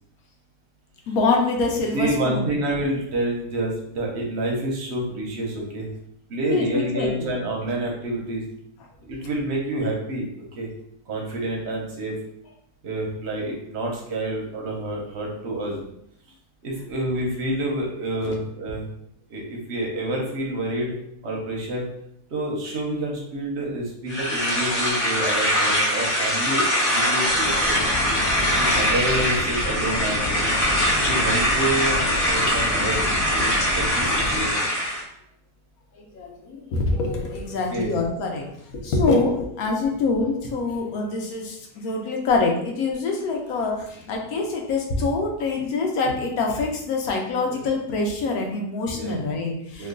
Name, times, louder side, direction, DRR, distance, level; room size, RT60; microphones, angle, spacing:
voice 1, 1.1-2.5 6.4-7.3 18.2-18.3 28.4-28.8 35.9-49.9, left 3 dB, 70° left, 1 dB, 1.1 m, -25 dB
voice 2, 1.9-5.9 6.3-8.4 9.0-10.3 10.5-10.7 11.1-12.1 12.8-15.8 16.6-18.8 19.3-20.9 21.2-21.9 22.3-27.7 28.5-30.3 31.0-33.4 33.7-34.7 37.7-37.9 39.0-39.2 47.4-47.6 48.9-49.2 49.8-49.9, right 1 dB, 55° right, -1 dB, 0.8 m, -28 dB
sound 1, 24.1-35.0, equal, 35° left, 0.8 m, -22 dB
sound 2, 27.2-34.5, left 1 dB, 5° right, 0.6 m, -31 dB
3.0 x 2.3 x 3.6 m, 0.73 s
omnidirectional pair, 1.7 m